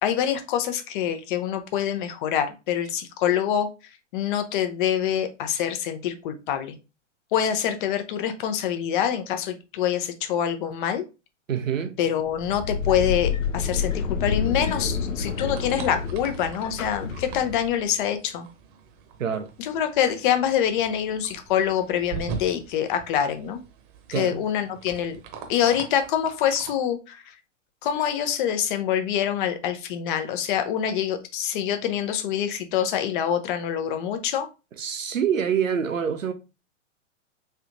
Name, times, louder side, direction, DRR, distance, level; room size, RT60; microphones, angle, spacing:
voice 1, 0.0-3.7 4.1-6.7 7.3-11.0 12.0-18.5 19.6-23.6 24.1-25.2 25.5-27.2 27.8-34.5, left 9 dB, 40° left, 0.6 m, -25 dB
voice 2, 11.5-12.0 19.2-19.5 24.1-24.4 34.8-36.3, right 8 dB, 85° right, 0.6 m, -26 dB
sound 1, 12.2-17.9, left 6 dB, 85° left, 0.7 m, -29 dB
sound 2, 14.7-26.7, right 6 dB, 40° right, 0.9 m, -42 dB
3.2 x 2.8 x 2.5 m
figure-of-eight pair, 110°, 38 cm